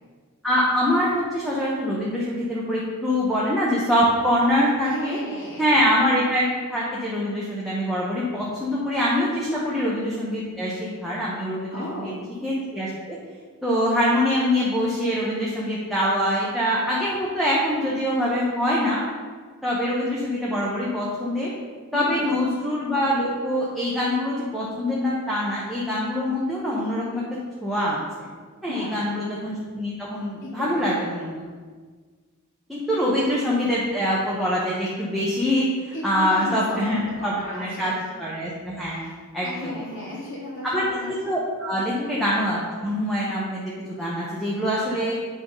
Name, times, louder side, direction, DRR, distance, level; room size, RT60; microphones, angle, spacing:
voice 1, 0.4-5.2 5.6-12.0 12.4-13.1 13.6-19.0 19.6-21.5 21.9-27.2 27.6-28.0 28.6-31.4 32.7-37.9 38.2-39.0 39.3-39.7 40.6-43.6 44.0-45.2, equal, ahead, -7 dB, 1.0 m, -24 dB
voice 2, 4.8-5.8 9.4-9.7 11.7-12.3 21.9-22.4 28.7-29.2 30.4-30.9 32.8-33.2 35.9-36.8 37.2-38.1 38.9-39.1 39.4-41.1 42.0-42.2, left 1 dB, 70° left, -10 dB, 2.0 m, -35 dB
8.6 x 3.5 x 5.3 m, 1.5 s
head